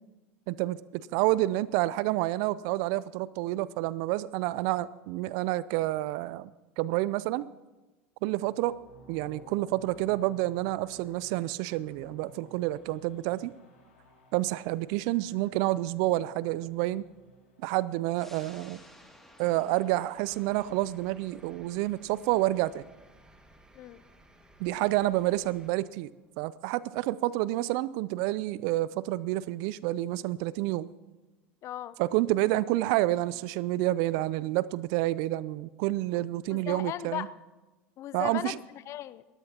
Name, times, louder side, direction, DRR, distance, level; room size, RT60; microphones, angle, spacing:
voice 1, 0.5-6.5 6.8-7.5 8.2-8.8 9.1-13.5 14.3-17.1 17.6-18.8 19.4-22.9 24.6-26.1 26.4-30.9 32.0-37.3 38.1-38.6, right 17 dB, 60° right, 19 dB, 0.5 m, -29 dB
sound 1, 8.2-18.3, equal, 80° left, 4.7 m, -56 dB
sound 2, 18.2-29.1 29.5-29.6, left 1 dB, 5° left, 2.4 m, -59 dB
sound 3, 20.2-25.7, right 1 dB, 10° right, 1.9 m, -58 dB
voice 2, 31.6-32.0 36.1-37.3 38.0-39.2, left 12 dB, 45° left, 17 dB, 0.6 m, -38 dB
21.5 x 16.0 x 2.9 m, 1.1 s
hypercardioid pair, 90°, 7 cm